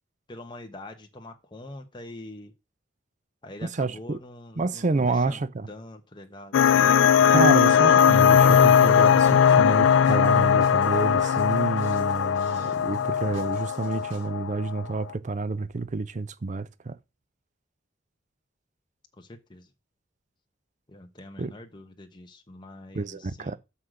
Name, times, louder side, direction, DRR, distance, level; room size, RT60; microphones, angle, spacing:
voice 1, 0.3-2.5 3.4-5.4 5.7-6.9 19.2-19.7 20.9-23.6, left 1 dB, 25° left, 1.1 m, -44 dB
voice 2, 3.6-4.2 4.6-5.7 7.3-17.0 21.4-21.5 22.9-23.6, right 3 dB, 40° right, 0.5 m, -29 dB
sound 1, 6.5-14.8, left 8 dB, 80° left, 0.3 m, -19 dB
sound 2, 8.1-14.3, right 3 dB, 80° right, 2.6 m, -52 dB
6.4 x 5.8 x 6.4 m
head